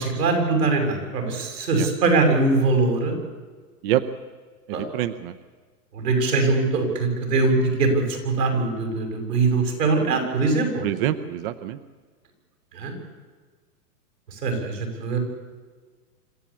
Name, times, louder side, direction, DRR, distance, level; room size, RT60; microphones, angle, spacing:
voice 1, 0.0-3.1 4.7-4.9 5.9-10.9 12.7-12.9 14.3-15.2, right 3 dB, 90° right, 4 dB, 7.0 m, -22 dB
voice 2, 4.7-5.3 10.8-11.8, right 12 dB, 35° right, 11 dB, 0.8 m, -26 dB
26.0 x 14.0 x 8.5 m, 1.4 s
hypercardioid pair, 145°, 47 cm